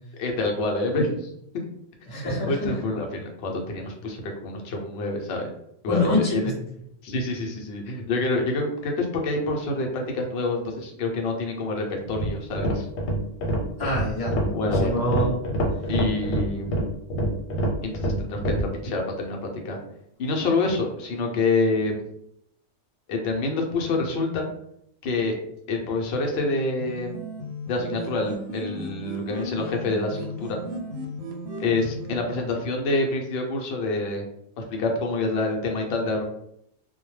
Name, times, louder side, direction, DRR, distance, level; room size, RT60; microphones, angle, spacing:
voice 1, 0.2-1.3 2.1-5.5 5.8-6.5 7.0-12.9 14.5-15.0 15.9-16.7 17.8-19.8 20.2-22.0 23.1-24.5 25.0-25.4 25.7-27.2 27.7-30.6 31.6-34.2 34.6-36.2, left 2 dB, 65° left, 1 dB, 0.7 m, -27 dB
voice 2, 2.1-2.8 5.9-6.5 13.8-15.3, left 1 dB, 30° left, -7 dB, 0.4 m, -26 dB
sound 1, 12.1-18.7, right 1 dB, 80° left, 1.0 m, -26 dB
sound 2, 26.8-32.2, left 1 dB, 70° right, 0.8 m, -35 dB
2.2 x 2.1 x 3.0 m, 0.74 s
omnidirectional pair, 1.3 m